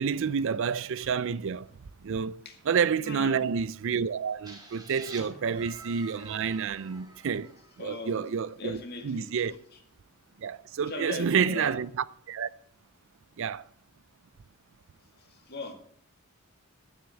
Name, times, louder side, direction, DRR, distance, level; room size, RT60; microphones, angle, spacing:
voice 1, 0.0-1.7 2.0-8.8 9.0-9.5 10.4-11.9 12.3-12.5 13.4-13.7, right 6 dB, 60° right, 0.4 m, -29 dB
voice 2, 3.0-3.4 5.3-5.5 7.8-8.3 8.6-9.8 10.8-11.8 15.1-15.7, left 2 dB, 50° left, 2.1 m, -39 dB
sound 1, 4.4-8.2, right 1 dB, 20° right, 2.8 m, -48 dB
11.0 x 7.4 x 6.9 m
head